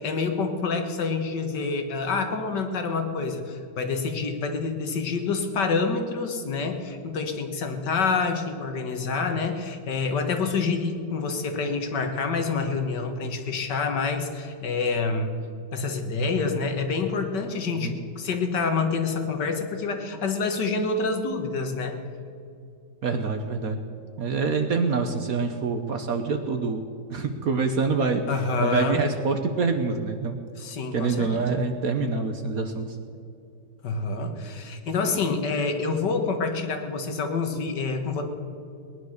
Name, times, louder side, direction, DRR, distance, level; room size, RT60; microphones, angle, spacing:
voice 1, 0.0-15.3 15.7-22.0 28.3-29.0 30.6-31.6 33.8-38.2, left 4 dB, 75° left, 5 dB, 2.0 m, -27 dB
voice 2, 23.0-23.8 24.2-28.2 28.6-30.4 30.9-33.0, right 4 dB, 60° right, 6 dB, 1.3 m, -26 dB
19.0 x 11.0 x 6.5 m, 2.6 s
omnidirectional pair, 1.9 m